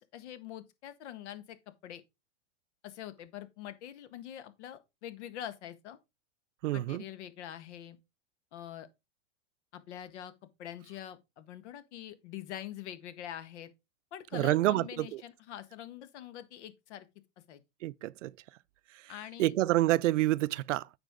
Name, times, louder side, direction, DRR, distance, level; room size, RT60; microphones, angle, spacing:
voice 1, 0.0-1.6 1.8-2.0 2.8-6.0 6.7-8.0 8.5-8.9 9.7-10.3 10.6-13.7 14.1-17.1 17.5-17.6 19.1-19.5, left 11 dB, 65° left, 1.6 m, -44 dB
voice 2, 6.6-7.0 14.3-15.2 17.8-18.3 18.9-19.1 19.4-20.9, right 16 dB, 80° right, 0.5 m, -28 dB
9.2 x 5.1 x 3.7 m
hypercardioid pair, 120°, 36 cm